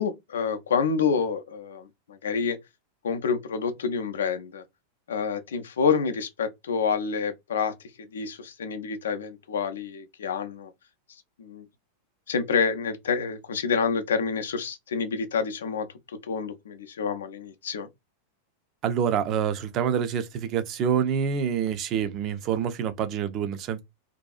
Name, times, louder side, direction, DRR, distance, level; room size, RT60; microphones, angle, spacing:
voice 1, 0.0-2.6 3.0-4.6 5.1-7.7 8.1-10.7 11.4-11.7 12.3-15.9 16.2-17.9, left 6 dB, 65° left, 0.4 m, -28 dB
voice 2, 18.8-23.8, right 8 dB, 35° right, 0.4 m, -26 dB
2.6 x 2.3 x 2.4 m
figure-of-eight pair, 90°, 0 cm